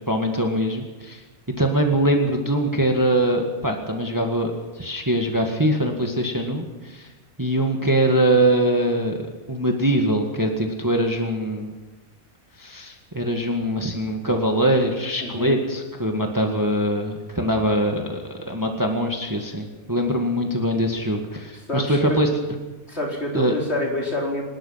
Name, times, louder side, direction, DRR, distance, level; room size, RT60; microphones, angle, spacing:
voice 1, 0.1-1.2 1.6-7.1 7.4-9.2 9.5-11.7 12.6-18.2 18.5-22.3 23.3-23.5, right 1 dB, 15° right, 2 dB, 2.0 m, -22 dB
voice 2, 15.2-15.5 21.7-22.2 22.9-24.4, left 1 dB, 45° left, -2 dB, 5.0 m, -27 dB
24.5 x 20.0 x 5.9 m, 1.2 s
omnidirectional pair, 1.6 m